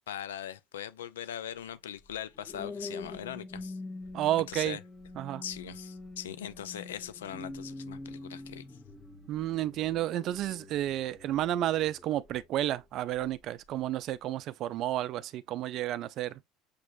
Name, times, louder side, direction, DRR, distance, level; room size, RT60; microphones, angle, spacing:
voice 1, 0.1-3.8 4.5-4.8 5.4-8.7, left 10 dB, 90° left, 0.4 m, -40 dB
sound 1, 2.0-12.6 13.2-13.4, left 2 dB, 15° left, 1.3 m, -45 dB
voice 2, 4.1-4.8 5.2-5.4 9.3-16.5, right 13 dB, 55° right, 0.4 m, -31 dB
6.6 x 3.0 x 2.6 m
hypercardioid pair, 80°, 0 cm